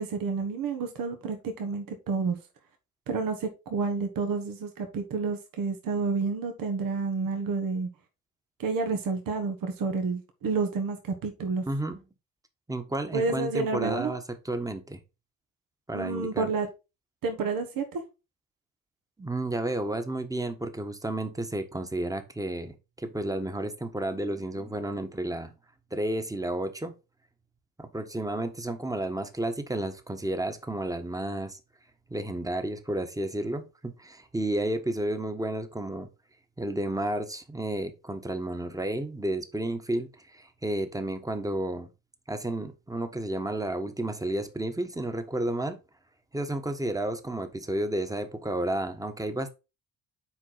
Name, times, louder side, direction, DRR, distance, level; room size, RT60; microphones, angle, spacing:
voice 1, 0.0-2.4 3.1-7.9 8.6-11.6 13.1-14.1 15.9-16.7 17.2-18.0, right 4 dB, 70° right, 1.5 m, -29 dB
voice 2, 11.7-12.0 12.7-15.0 15.9-16.5 19.2-25.5 25.9-26.9 27.8-31.6 32.1-36.1 36.6-41.9 42.3-45.8 46.3-49.5, right 1 dB, 10° right, 1.3 m, -31 dB
7.3 x 4.6 x 4.0 m
supercardioid pair, 70°, 35 cm